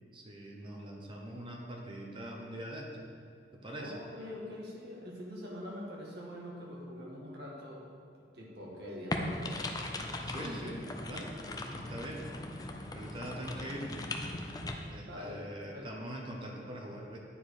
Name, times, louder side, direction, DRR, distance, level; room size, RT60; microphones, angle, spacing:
voice 1, 0.1-3.0 3.6-3.9 10.3-11.3 11.7-12.2 12.9-14.0 14.9-17.2, right 1 dB, 30° right, 0 dB, 0.9 m, -42 dB
voice 2, 3.8-7.9 8.3-9.7 15.0-16.2, left 1 dB, 65° right, -3 dB, 1.7 m, -44 dB
sound 1, 9.1-14.7, left 2 dB, 20° left, 0.5 m, -39 dB
9.7 x 4.5 x 4.8 m, 2.2 s
head